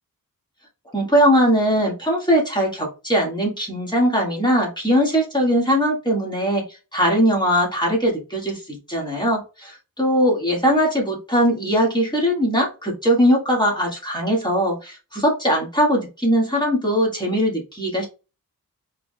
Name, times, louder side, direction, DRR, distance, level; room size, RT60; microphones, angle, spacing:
voice 1, 0.9-6.6 6.9-18.1, equal, 10° left, -2 dB, 1.8 m, -20 dB
4.8 x 3.4 x 2.2 m, 0.30 s
wide cardioid pair, 115°, 36 cm